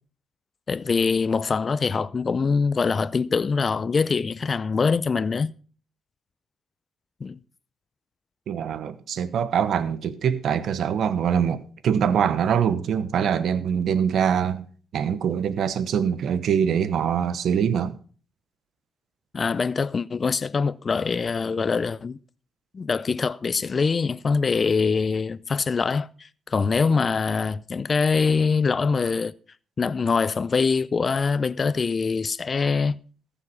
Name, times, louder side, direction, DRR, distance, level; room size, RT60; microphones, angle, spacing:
voice 1, 0.7-5.5 7.2-7.4 19.3-22.2 22.7-29.3 29.8-33.0, left 5 dB, 35° left, 0.5 m, -24 dB
voice 2, 8.5-14.6 14.9-17.9, right 8 dB, 65° right, 1.0 m, -23 dB
14.5 x 7.2 x 5.5 m
cardioid pair, 90°, 0 cm